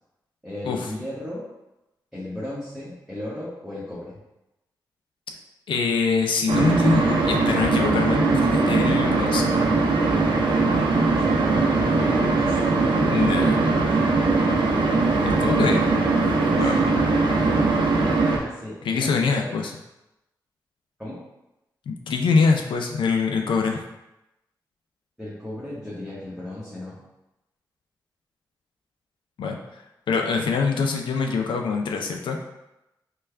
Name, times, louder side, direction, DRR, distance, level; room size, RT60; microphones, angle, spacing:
voice 1, 0.4-1.4 2.1-4.2 11.1-13.5 14.0-14.5 16.6-16.8 18.4-19.5 21.0-21.2 25.2-27.0, left 1 dB, 5° right, -9 dB, 1.1 m, -35 dB
voice 2, 5.7-9.5 13.1-13.6 15.2-15.8 16.6-16.8 18.8-19.7 21.9-23.8 29.4-29.8 30.1-32.4, left 4 dB, 85° left, 2 dB, 0.4 m, -24 dB
sound 1, 6.5-18.4, right 3 dB, 80° right, 0.6 m, -20 dB
3.2 x 2.3 x 3.3 m, 0.94 s
cardioid pair, 55°, 8 cm